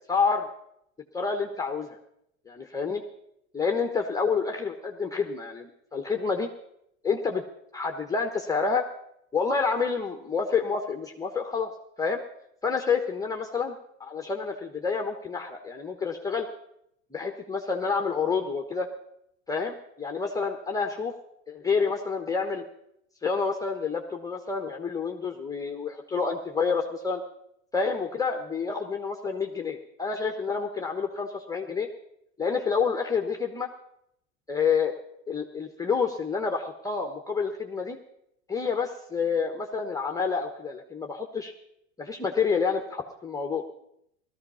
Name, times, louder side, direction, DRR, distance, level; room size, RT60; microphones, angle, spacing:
voice 1, 0.1-0.5 1.1-1.9 2.5-3.0 3.5-6.5 7.0-7.4 7.7-8.8 9.3-11.7 12.0-12.2 12.6-13.7 14.1-16.5 17.1-18.9 19.5-21.1 21.5-22.6 23.2-27.2 27.7-31.9 32.4-33.7 34.5-34.9 35.3-38.0 38.5-41.5 42.0-43.6, left 5 dB, 10° left, 3 dB, 1.2 m, -28 dB
17.0 x 14.0 x 5.7 m, 0.76 s
hypercardioid pair, 110°, 41 cm